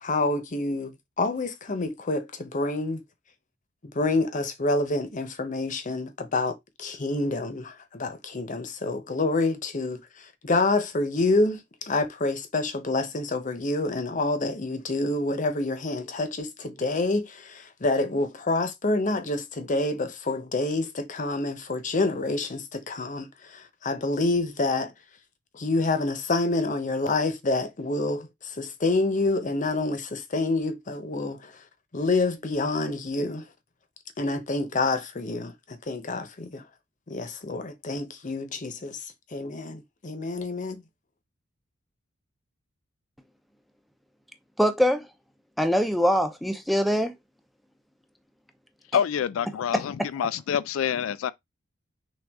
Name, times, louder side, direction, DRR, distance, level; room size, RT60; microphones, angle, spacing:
voice 1, 0.0-3.0 3.8-24.9 25.5-31.6 31.9-33.5 34.2-36.6 37.1-39.1 39.3-40.8, left 2 dB, 40° left, 0.8 m, -27 dB
voice 2, 44.6-45.1 45.6-47.1 49.7-50.1, equal, ahead, 0.5 m, -23 dB
voice 3, 48.9-51.3, left 8 dB, 80° left, 0.3 m, -27 dB
6.1 x 2.4 x 3.5 m
head